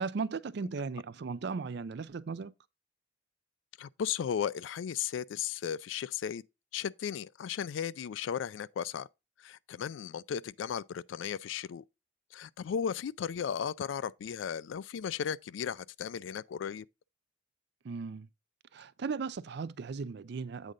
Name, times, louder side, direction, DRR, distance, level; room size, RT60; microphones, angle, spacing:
voice 1, 0.0-2.5 17.8-18.3 18.7-20.7, right 4 dB, 60° right, 0.4 m, -36 dB
voice 2, 3.8-6.4 6.7-9.1 9.4-11.8 12.3-16.9, left 8 dB, 85° left, 0.3 m, -35 dB
8.3 x 3.7 x 5.2 m
head